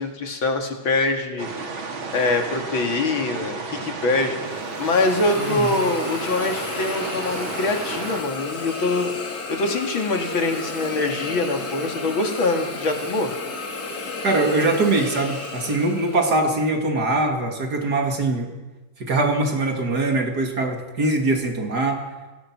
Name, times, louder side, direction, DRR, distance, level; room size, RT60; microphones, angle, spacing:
voice 1, 0.0-1.5 2.1-4.4 4.8-13.3, left 2 dB, 75° left, 3 dB, 3.3 m, -24 dB
sound 1, 1.4-8.2, right 4 dB, 80° right, 3.2 m, -33 dB
Hiss, 4.4-16.5, left 3 dB, 45° left, 2.7 m, -33 dB
voice 2, 5.4-5.7 14.2-18.5 19.0-22.0, right 2 dB, 50° right, 3 dB, 3.0 m, -22 dB
29.0 x 18.5 x 6.2 m, 1.2 s
omnidirectional pair, 2.2 m